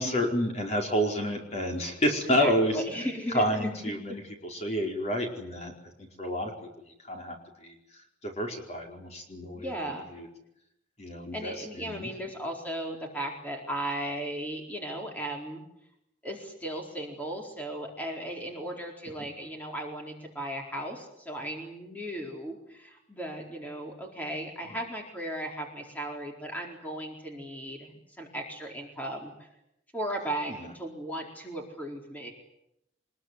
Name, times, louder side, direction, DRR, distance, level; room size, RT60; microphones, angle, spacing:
voice 1, 0.0-2.8 3.3-5.7 6.0-6.5 7.0-7.7 8.2-10.3 11.0-12.1 19.2-19.3 30.5-30.7, equal, 40° left, 2 dB, 4.8 m, -30 dB
voice 2, 2.4-3.7 9.5-10.0 11.3-15.6 16.2-29.5 29.9-32.3, right 1 dB, 10° left, 1 dB, 4.3 m, -36 dB
24.5 x 21.5 x 9.8 m, 0.82 s
head